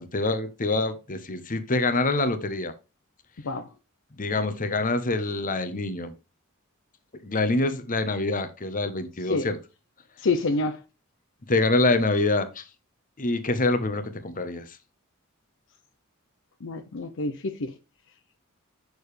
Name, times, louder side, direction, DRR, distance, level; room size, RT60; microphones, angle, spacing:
voice 1, 0.0-2.7 4.2-6.1 7.2-9.6 11.5-12.6 13.2-14.8, left 2 dB, 40° left, 1.1 m, -25 dB
voice 2, 10.2-10.8 16.6-17.7, left 3 dB, 60° left, 0.7 m, -27 dB
6.8 x 6.5 x 3.3 m
head